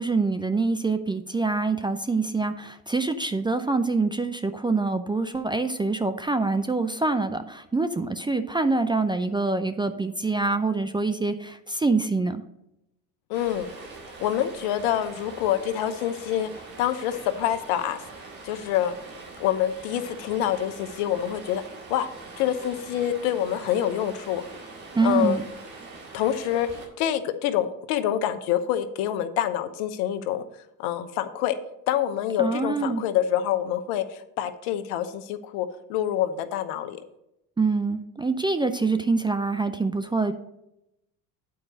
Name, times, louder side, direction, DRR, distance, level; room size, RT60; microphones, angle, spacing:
voice 1, 0.0-12.4 24.9-25.4 32.4-33.0 37.6-40.3, right 3 dB, 10° right, 9 dB, 0.4 m, -25 dB
voice 2, 13.3-13.7 14.2-16.5 16.8-18.0 18.4-18.9 19.4-21.6 21.9-22.1 22.4-24.4 25.0-25.4 26.1-26.7 27.0-30.4 30.8-31.6 31.9-37.0, left 11 dB, 70° left, 10 dB, 1.0 m, -26 dB
Stream, 13.3-26.9, right 3 dB, 90° right, 2.3 m, -43 dB
8.6 x 4.7 x 6.3 m, 0.85 s
hypercardioid pair, 75°, 50 cm